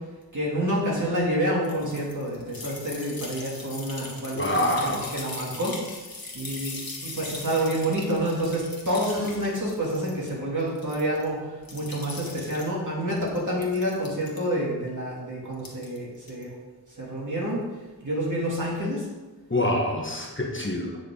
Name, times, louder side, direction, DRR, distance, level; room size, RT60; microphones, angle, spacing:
voice 1, 0.3-5.8 6.3-16.6 17.0-17.6 18.0-19.1, equal, 50° right, -5 dB, 3.0 m, -28 dB
sound 1, 1.6-10.3 10.6-11.3 11.6-12.7 13.2-14.4 15.5-16.0 16.3-16.4, left 2 dB, 60° left, 1.7 m, -40 dB
voice 2, 4.3-5.1 19.5-21.0, left 1 dB, 30° left, -1 dB, 1.4 m, -26 dB
9.9 x 6.1 x 4.0 m, 1.2 s
wide cardioid pair, 55°, 39 cm